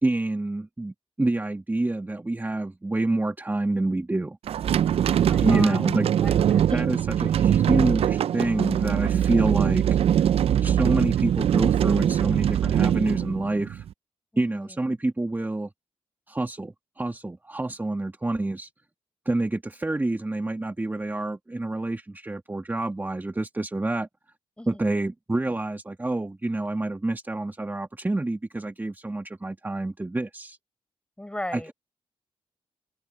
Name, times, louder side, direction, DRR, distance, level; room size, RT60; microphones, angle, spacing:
voice 1, 0.0-4.4 5.4-6.1 6.7-10.3 10.6-13.8 14.4-15.7 16.3-18.7 19.3-24.1 24.7-30.6 31.5-31.7, right 2 dB, 20° right, 1.8 m, -27 dB
sound 1, 4.5-13.9, right 10 dB, 70° right, 0.4 m, -22 dB
voice 2, 5.1-5.8 6.2-6.6 6.9-7.0 14.3-14.8 24.6-24.8 31.2-31.7, left 1 dB, 10° left, 6.4 m, -37 dB
open air
cardioid pair, 70°, 10 cm